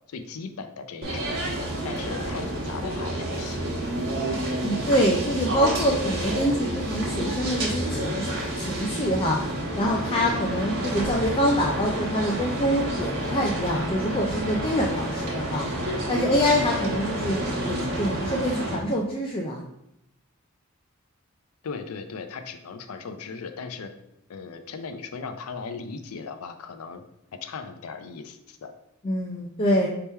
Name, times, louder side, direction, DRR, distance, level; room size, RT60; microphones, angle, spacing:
voice 1, 0.1-1.3 1.8-3.7 21.6-23.9 24.3-27.0 27.4-28.7, left 5 dB, 90° left, 8 dB, 0.5 m, -37 dB
sound 1, 1.0-18.8, right 1 dB, 60° right, 1.2 m, -29 dB
voice 2, 4.6-9.4 9.8-15.7 16.1-19.6 29.0-29.9, equal, 25° left, -1 dB, 0.4 m, -25 dB
3.5 x 2.9 x 4.4 m, 0.80 s
head